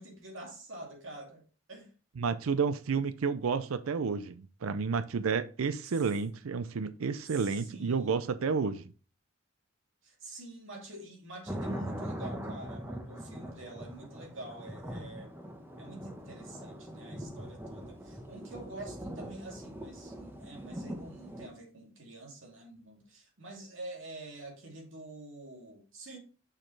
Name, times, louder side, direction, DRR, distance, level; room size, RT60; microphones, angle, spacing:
voice 1, 0.0-1.4 1.7-1.9 5.9-6.1 7.2-8.3 10.0-15.3 15.8-26.2, right 2 dB, 65° right, 2.4 m, -47 dB
voice 2, 2.2-8.8, right 5 dB, 85° right, 0.5 m, -31 dB
sound 1, 11.5-21.5, equal, 10° right, 1.0 m, -41 dB
6.5 x 6.2 x 3.2 m
head